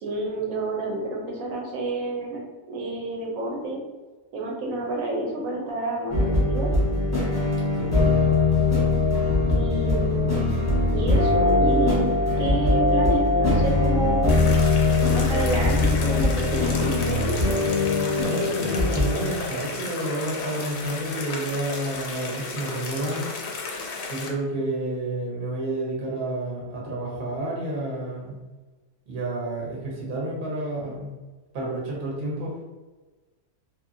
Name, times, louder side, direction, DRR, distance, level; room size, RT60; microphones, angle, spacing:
voice 1, 0.0-2.4 2.7-3.8 4.3-6.7 9.5-10.5 10.9-14.4 15.1-17.4, right 2 dB, 75° right, -1 dB, 1.0 m, -29 dB
sound 1, 6.1-19.3, left 2 dB, 15° left, 0.7 m, -21 dB
sound 2, 14.3-24.3, left 3 dB, 65° left, 0.7 m, -34 dB
voice 2, 18.2-23.2 24.1-28.4 29.1-31.2 31.5-32.6, right 1 dB, 45° right, -4 dB, 0.8 m, -30 dB
2.8 x 2.5 x 2.6 m, 1.2 s
omnidirectional pair, 1.5 m